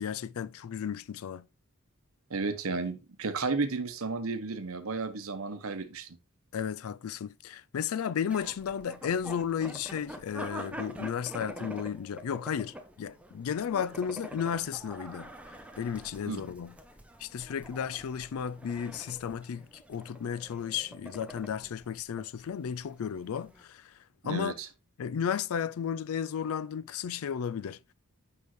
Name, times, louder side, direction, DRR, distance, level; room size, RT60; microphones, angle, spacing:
voice 1, 0.0-1.5 6.5-15.3 15.8-16.7 17.2-23.9 24.3-24.5 25.0-27.8, left 7 dB, 75° left, 0.4 m, -34 dB
voice 2, 2.3-6.1 16.3-16.4 24.2-24.7, right 4 dB, 70° right, 0.9 m, -33 dB
sound 1, 8.3-23.6, equal, 5° right, 0.7 m, -46 dB
6.4 x 5.3 x 3.1 m
head